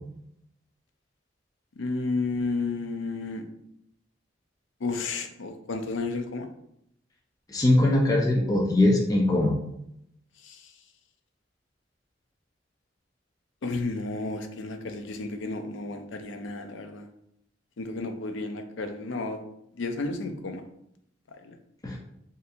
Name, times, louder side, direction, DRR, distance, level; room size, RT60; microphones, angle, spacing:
voice 1, 1.8-3.4 4.8-6.5 10.4-10.7 13.6-17.1 17.8-19.4 19.8-20.6 21.4-21.5, left 3 dB, 80° left, 6 dB, 0.5 m, -32 dB
voice 2, 7.5-9.5 21.8-22.0, left 1 dB, 20° left, -1 dB, 0.5 m, -21 dB
4.2 x 2.6 x 2.6 m, 0.75 s
head